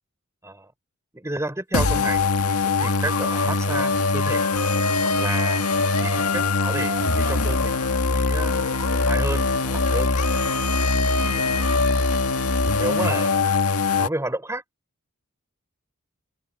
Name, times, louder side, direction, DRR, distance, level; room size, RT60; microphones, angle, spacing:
voice 1, 1.1-4.4 5.2-5.6 6.0-7.8 8.1-10.1 11.1-11.6 12.8-13.3 14.0-14.6, right 1 dB, 15° right, 3.8 m, -31 dB
sound 1, 1.7-14.1, left 3 dB, 85° left, 1.8 m, -22 dB
open air
head